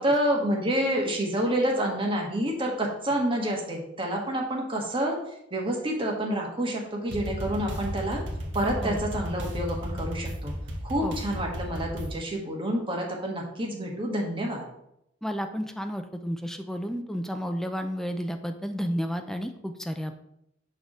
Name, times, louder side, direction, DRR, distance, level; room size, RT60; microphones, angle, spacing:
voice 1, 0.0-5.2 5.5-8.2 8.5-10.5 10.8-14.6, right 1 dB, 30° right, -1 dB, 1.4 m, -28 dB
sound 1, 7.1-12.1, equal, 70° right, 1.4 m, -34 dB
voice 2, 15.2-20.1, equal, ahead, 6 dB, 0.4 m, -32 dB
6.5 x 3.4 x 6.0 m, 0.78 s
head